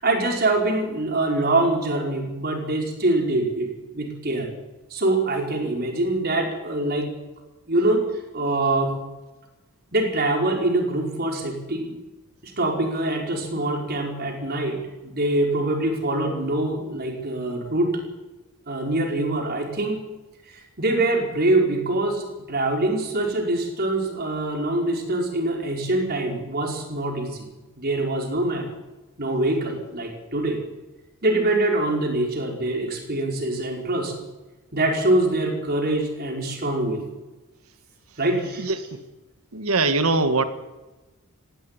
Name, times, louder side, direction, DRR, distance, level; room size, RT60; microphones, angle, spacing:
voice 1, 0.0-4.5 4.9-7.1 7.7-8.0 8.3-8.9 9.9-11.9 12.4-17.9 18.7-20.0 20.5-27.5 27.8-28.6 29.2-30.6 31.2-34.1 34.7-37.0 38.2-38.7, right 2 dB, 45° right, 2 dB, 5.0 m, -24 dB
voice 2, 38.6-39.0 39.5-40.4, right 3 dB, 75° right, 10 dB, 1.7 m, -22 dB
18.0 x 15.5 x 9.8 m, 1.1 s
head